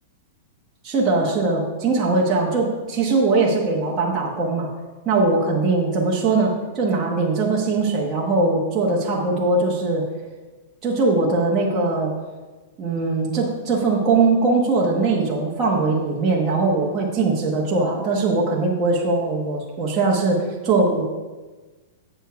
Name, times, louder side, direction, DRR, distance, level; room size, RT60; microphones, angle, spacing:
voice 1, 0.8-4.7 5.0-10.0 10.8-12.1 12.8-21.0, right 3 dB, 15° right, -5 dB, 1.1 m, -21 dB
8.1 x 4.4 x 6.7 m, 1.3 s
supercardioid pair, 165°, 0 cm